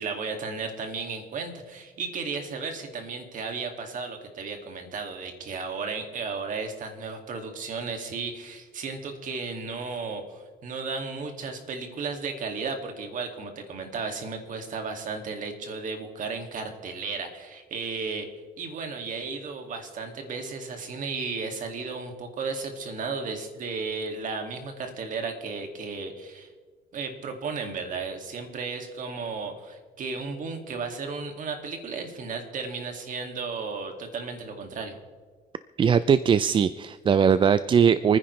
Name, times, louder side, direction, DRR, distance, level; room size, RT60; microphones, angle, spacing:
voice 1, 0.0-18.3 18.6-26.5 26.9-35.0, right 4 dB, 50° right, 4 dB, 2.2 m, -34 dB
voice 2, 35.8-38.2, right 7 dB, 30° right, 13 dB, 0.4 m, -20 dB
28.5 x 10.0 x 3.2 m, 1.5 s
cardioid pair, 110°, 17 cm